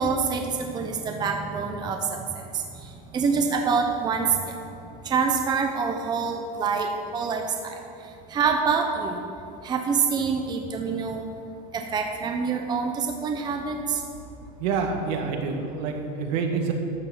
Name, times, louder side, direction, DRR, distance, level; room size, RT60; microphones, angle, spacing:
voice 1, 0.0-2.4 3.1-4.6 5.0-7.8 8.3-9.2 9.6-11.3 11.7-14.0, right 5 dB, 20° right, 3 dB, 0.8 m, -26 dB
voice 2, 14.6-16.7, right 5 dB, 75° right, 3 dB, 1.8 m, -27 dB
12.5 x 6.8 x 7.3 m, 2.5 s
cardioid pair, 160°, 21 cm